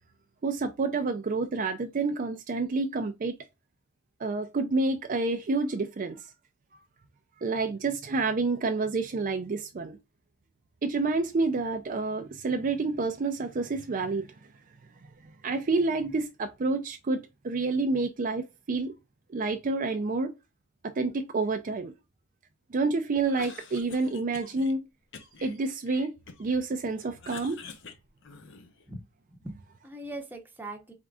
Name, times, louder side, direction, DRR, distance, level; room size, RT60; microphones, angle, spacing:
voice 1, 0.4-3.3 4.2-6.3 7.4-10.0 10.8-14.3 15.4-18.9 19.3-20.3 20.8-21.9 22.7-24.8 25.4-26.1 26.4-27.6, right 3 dB, 40° right, 0.4 m, -28 dB
Cough, 23.2-24.7 25.1-26.6 26.9-28.8, left 5 dB, 55° left, 0.7 m, -47 dB
voice 2, 28.9-30.9, right 1 dB, 10° right, 0.8 m, -41 dB
4.3 x 3.7 x 2.3 m
head